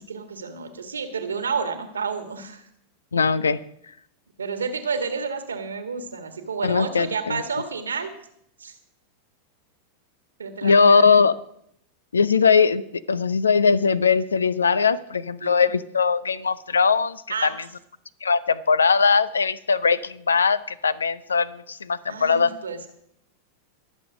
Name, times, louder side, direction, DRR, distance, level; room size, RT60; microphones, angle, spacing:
voice 1, 0.1-2.6 4.4-8.1 8.6-8.7 10.4-11.0 15.4-15.5 17.3-17.5 22.0-22.9, right 5 dB, 70° right, 8 dB, 1.6 m, -30 dB
voice 2, 3.1-3.6 6.6-7.4 10.6-11.3 12.1-12.8 13.1-17.5 18.2-22.5, left 5 dB, 75° left, 20 dB, 0.5 m, -20 dB
22.0 x 7.4 x 4.9 m, 0.71 s
figure-of-eight pair, 90°, 0 cm